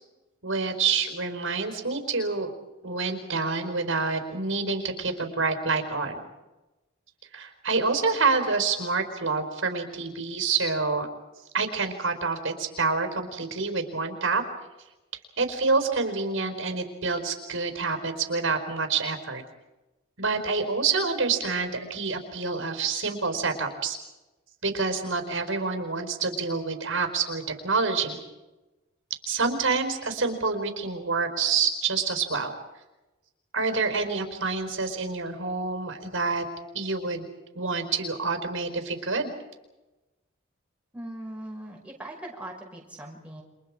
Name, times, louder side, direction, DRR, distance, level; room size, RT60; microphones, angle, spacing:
voice 1, 0.4-2.5 2.8-6.2 7.3-11.1 11.5-14.4 15.4-19.4 20.2-24.0 24.6-28.2 29.3-32.5 33.5-36.5 36.7-37.3 37.5-39.3, right 4 dB, 75° right, 6 dB, 4.7 m, -27 dB
voice 2, 40.9-43.4, right 1 dB, 5° right, -2 dB, 5.8 m, -40 dB
29.5 x 26.5 x 5.0 m, 1.0 s
head